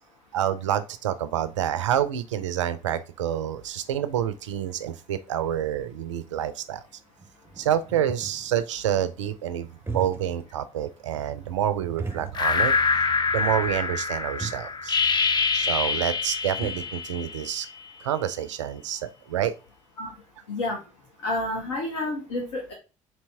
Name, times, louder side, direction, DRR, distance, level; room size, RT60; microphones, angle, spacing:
voice 1, 0.3-6.8 7.6-9.7 9.9-12.7 13.3-15.0 15.5-17.7 18.0-19.5, right 10 dB, 75° right, 12 dB, 0.4 m, -28 dB
sound 1, 7.2-8.6 9.7-10.5 10.8-10.9 12.0-12.8 13.1-13.2 14.1-14.2 14.4-14.7 16.1-16.2 16.3-17.0, right 4 dB, 15° right, 0.6 m, -37 dB
sound 2, 12.3-17.8, left 5 dB, 30° left, 0.5 m, -25 dB
voice 2, 20.5-20.8 21.2-22.7, left 2 dB, 70° left, 0 dB, 0.9 m, -29 dB
4.1 x 2.9 x 3.3 m, 0.31 s
figure-of-eight pair, 50°, 16 cm